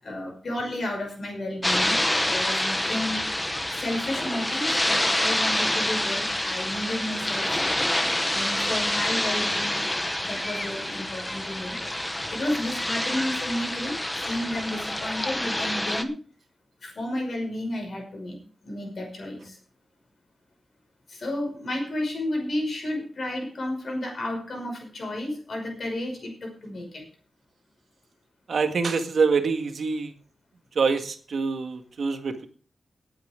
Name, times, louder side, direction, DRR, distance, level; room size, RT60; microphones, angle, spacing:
voice 1, 0.0-3.3 3.7-7.6 8.3-9.8 10.2-11.8 12.1-16.1 16.8-18.4 18.6-19.6 21.1-27.0, left 1 dB, 45° left, 1 dB, 5.8 m, -32 dB
sound 1, 1.6-16.0, left 1 dB, 10° left, 0.9 m, -27 dB
voice 2, 28.5-30.1 30.7-32.5, right 4 dB, 60° right, 6 dB, 1.8 m, -25 dB
18.5 x 8.9 x 3.8 m, 0.39 s
wide cardioid pair, 180°, 0 cm